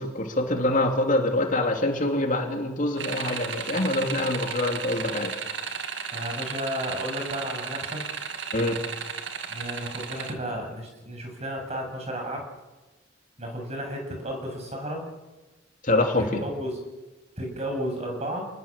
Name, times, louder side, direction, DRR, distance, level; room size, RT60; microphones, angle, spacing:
voice 1, 0.0-5.3 8.5-8.8 15.8-16.4, left 2 dB, 45° left, 3 dB, 3.0 m, -25 dB
sound 1, 3.0-10.3, right 6 dB, 75° right, 2.0 m, -34 dB
voice 2, 6.1-8.0 9.5-12.4 13.4-15.0 16.2-16.8 17.4-18.5, equal, 35° right, 2 dB, 7.3 m, -33 dB
28.0 x 20.5 x 7.4 m, 1.2 s
head